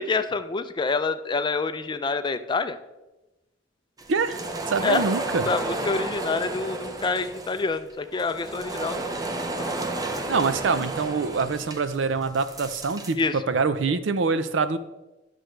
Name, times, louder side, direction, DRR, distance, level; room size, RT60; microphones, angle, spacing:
voice 1, 0.0-2.8 4.8-5.0 5.5-9.7 13.2-13.4, left 4 dB, 25° left, 11 dB, 0.4 m, -27 dB
sound 1, 4.0-13.1, right 2 dB, 20° right, 0.6 m, -32 dB
voice 2, 4.1-5.5 10.3-14.8, right 4 dB, 70° right, 12 dB, 0.5 m, -25 dB
11.0 x 6.3 x 3.3 m, 1.0 s
head